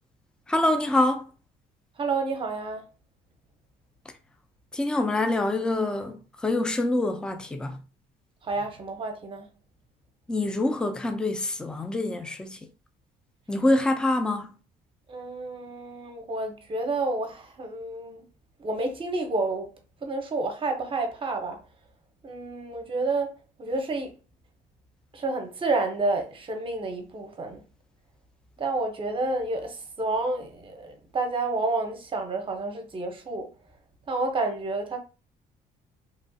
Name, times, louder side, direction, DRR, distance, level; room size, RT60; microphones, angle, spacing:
voice 1, 0.5-1.3 4.7-7.8 10.3-12.6 13.5-14.5, left 2 dB, 5° left, 0.4 m, -25 dB
voice 2, 2.0-2.8 8.4-9.5 15.1-18.2 18.6-21.6 22.2-24.2 25.1-27.6 28.6-33.5 34.1-35.0, right 2 dB, 30° right, 0.7 m, -30 dB
2.9 x 2.3 x 2.6 m
cardioid pair, 110°, 17 cm